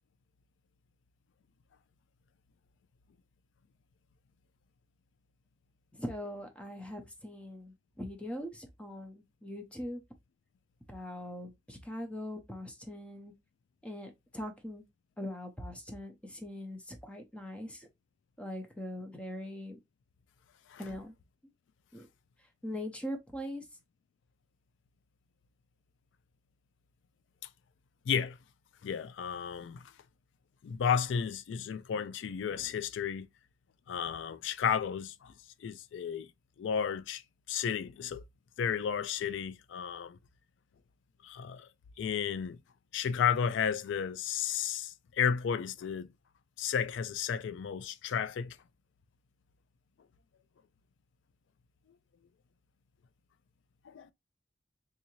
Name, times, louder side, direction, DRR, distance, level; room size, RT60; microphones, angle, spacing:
voice 1, 5.9-10.0 10.9-13.3 13.8-14.8 15.2-17.9 18.4-19.8 20.8-21.1 21.9-22.1 22.6-23.6, left 1 dB, 5° left, 0.6 m, -41 dB
voice 2, 28.1-28.4 28.8-29.8 30.6-33.3 33.9-35.3 35.6-36.3 36.6-37.2 37.5-38.2 38.6-40.2 41.2-41.7 42.0-42.6 42.9-46.1 46.6-48.6 53.9-54.1, left 7 dB, 85° left, 0.3 m, -33 dB
3.7 x 2.7 x 2.9 m
head